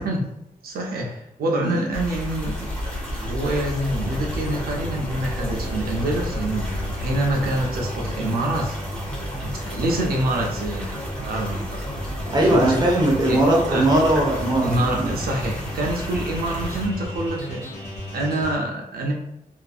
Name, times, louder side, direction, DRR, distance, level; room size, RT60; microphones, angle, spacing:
voice 1, 0.6-2.6 2.9-8.8 9.4-10.9 11.2-11.8 12.3-12.9 13.3-13.4 13.7-13.9 14.6-17.6 18.1-19.1, right 1 dB, 90° right, 0 dB, 0.5 m, -26 dB
sound 1, 1.9-16.9, equal, 5° left, 0.9 m, -34 dB
sound 2, 2.4-7.7, left 1 dB, 75° left, 0.4 m, -32 dB
sound 3, 3.8-18.5, left 1 dB, 55° left, 1.2 m, -34 dB
voice 2, 12.3-15.2, right 1 dB, 25° right, -2 dB, 0.6 m, -19 dB
2.5 x 2.5 x 2.3 m, 0.82 s
wide cardioid pair, 125°, 15 cm